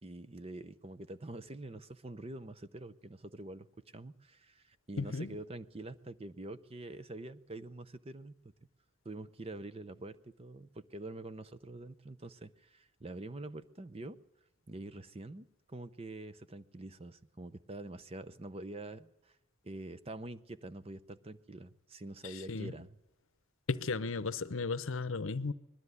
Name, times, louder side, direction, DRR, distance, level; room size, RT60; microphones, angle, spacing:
voice 1, 0.0-3.7 3.9-8.3 9.0-14.2 14.7-19.4 19.6-23.0, right 2 dB, 25° right, 0.6 m, -46 dB
voice 2, 5.0-5.3 22.2-22.7 23.7-25.5, left 4 dB, 65° left, 0.8 m, -35 dB
21.0 x 13.0 x 9.7 m
head